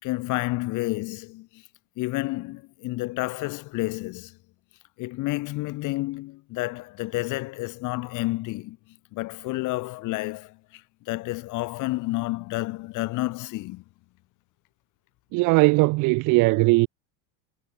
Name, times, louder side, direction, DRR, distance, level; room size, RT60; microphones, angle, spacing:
voice 1, 0.0-1.6 2.0-4.4 5.0-8.8 9.1-13.8, left 20 dB, 50° left, 3.8 m, -30 dB
voice 2, 15.3-16.9, right 24 dB, 50° right, 1.3 m, -19 dB
cardioid pair, 160°, 40 cm